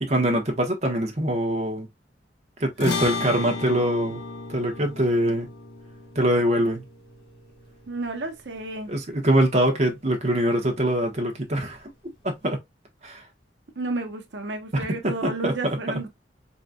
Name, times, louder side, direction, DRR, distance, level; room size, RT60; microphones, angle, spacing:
voice 1, 0.0-1.9 2.6-4.2 4.5-5.5 6.1-6.8 8.9-11.9 12.2-12.6 13.0-13.2 14.7-15.8, right 1 dB, 40° right, 1.1 m, -23 dB
sound 1, 2.8-9.3, left 3 dB, 65° left, 1.6 m, -34 dB
voice 2, 7.9-8.9 13.8-16.1, right 2 dB, 85° right, 0.9 m, -31 dB
4.0 x 3.9 x 2.2 m
head